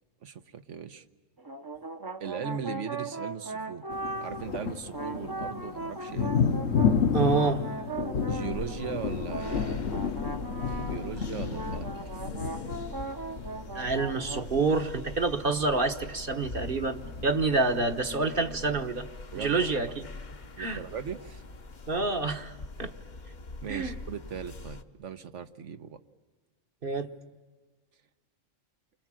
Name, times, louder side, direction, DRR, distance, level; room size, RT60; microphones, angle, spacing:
voice 1, 0.2-1.0 2.2-3.9 4.2-6.3 8.3-9.9 10.7-11.9 19.3-19.7 20.6-21.4 23.6-26.0, right 7 dB, 70° right, 10 dB, 1.4 m, -38 dB
sound 1, 1.4-4.5 4.9-11.3 11.5-14.5, right 3 dB, 20° right, 0.8 m, -38 dB
sound 2, 3.9-15.0 15.4-15.7 16.2-16.3 16.6-17.8 20.0-20.1 21.9-22.0, left 6 dB, 65° left, 1.3 m, -31 dB
voice 2, 7.1-7.7 13.7-19.1 19.3-19.9 20.6-20.8 21.9-22.9 23.7-23.9 26.8-27.1, right 3 dB, 45° right, 7 dB, 1.3 m, -28 dB
sound 3, 8.5-24.8, left 3 dB, 40° left, 1.0 m, -43 dB
29.0 x 24.5 x 7.6 m, 1.4 s
omnidirectional pair, 1.3 m